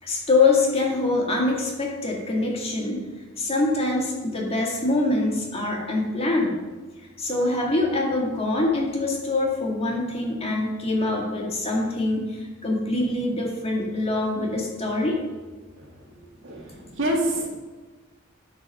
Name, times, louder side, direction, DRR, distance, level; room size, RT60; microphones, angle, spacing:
voice 1, 0.0-3.0 3.4-6.6 7.2-15.2 16.7-16.9, left 2 dB, 30° left, -1 dB, 2.0 m, -24 dB
voice 2, 16.4-17.5, right 1 dB, 65° right, -1 dB, 2.0 m, -26 dB
13.5 x 4.7 x 5.4 m, 1.3 s
head